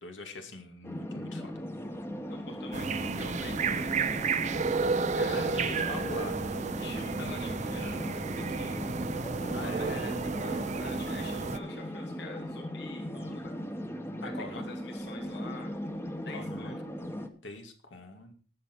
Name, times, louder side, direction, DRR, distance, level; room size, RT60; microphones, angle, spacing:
voice 1, 0.0-1.6 5.3-6.5 9.5-9.9 14.2-14.7 16.3-16.8 17.4-18.3, left 2 dB, 90° left, 5 dB, 2.3 m, -43 dB
sound 1, 0.8-17.3, equal, 15° left, 1.1 m, -38 dB
voice 2, 2.3-4.3 5.1-6.1 6.8-8.8 9.5-13.6 14.2-15.7 16.2-16.8, left 3 dB, 60° left, 3 dB, 1.5 m, -46 dB
sound 2, 2.7-11.6, right 4 dB, 40° right, 0.5 m, -32 dB
19.5 x 6.8 x 4.5 m, 0.40 s
head